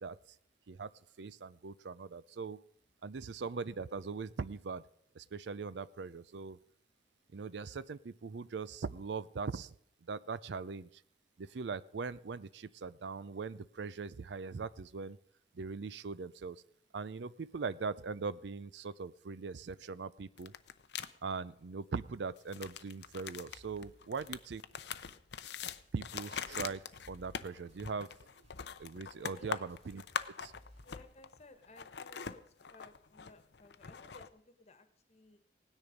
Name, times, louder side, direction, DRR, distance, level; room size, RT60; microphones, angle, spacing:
voice 1, 0.0-0.4 0.7-0.9 1.2-2.6 3.0-4.8 5.1-6.6 7.3-9.7 10.1-10.9 11.4-15.2 15.5-16.6 16.9-20.5 21.2-24.6 25.9-28.1 28.8-30.0 30.4-30.5, right 4 dB, 70° right, 17 dB, 0.5 m, -41 dB
sound 1, 20.4-21.1 22.4-31.4 31.6-34.3, left 7 dB, 65° left, 0.6 m, -43 dB
sound 2, 22.9-27.4 27.7-30.9, equal, 40° right, 2.4 m, -63 dB
voice 2, 30.8-32.4 32.7-35.4, left 2 dB, 35° left, 9 dB, 1.3 m, -58 dB
17.5 x 9.8 x 5.2 m, 0.66 s
head